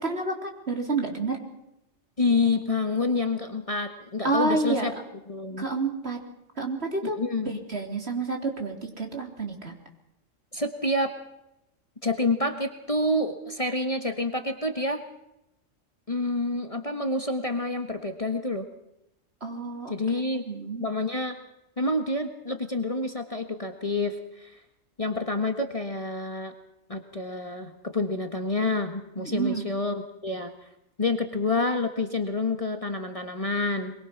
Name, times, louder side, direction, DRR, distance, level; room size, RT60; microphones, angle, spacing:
voice 1, 0.0-1.4 4.2-4.9 5.6-6.2 6.6-7.2 7.5-9.7 19.4-20.9 29.2-29.7, right 3 dB, 50° right, 2 dB, 3.9 m, -29 dB
voice 2, 2.2-4.9 5.3-5.6 7.1-7.6 10.5-11.1 12.0-15.0 16.1-18.7 19.9-20.4 20.8-21.4 21.8-24.5 25.0-26.5 26.9-30.5 31.0-33.9, left 2 dB, 25° left, 5 dB, 1.5 m, -28 dB
23.5 x 22.5 x 6.0 m, 0.86 s
omnidirectional pair, 1.3 m